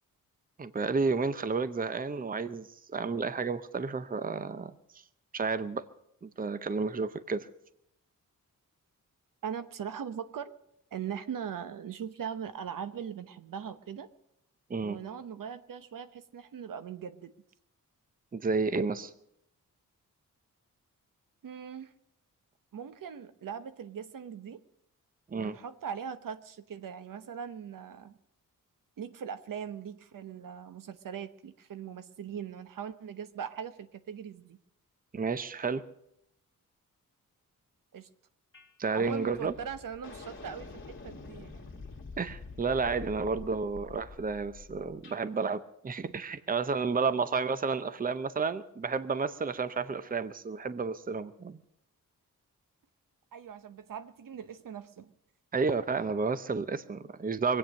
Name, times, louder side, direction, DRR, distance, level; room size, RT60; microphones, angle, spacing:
voice 1, 0.6-4.7 5.3-5.8 6.2-7.5 14.7-15.0 18.3-19.1 25.3-25.6 35.1-35.8 38.8-39.5 42.2-51.6 55.5-57.6, right 4 dB, 25° right, 14 dB, 0.7 m, -31 dB
voice 2, 9.4-10.5 10.9-14.1 14.8-17.3 21.4-21.9 22.7-24.6 25.3-28.2 29.0-34.6 37.9-38.1 38.9-41.8 50.1-50.2 53.3-55.1, right 7 dB, 75° right, 12 dB, 0.9 m, -40 dB
sound 1, 38.5-38.7 39.0-45.2, left 4 dB, 35° left, 2.2 m, -47 dB
22.5 x 8.8 x 6.4 m, 0.75 s
wide cardioid pair, 100°, 33 cm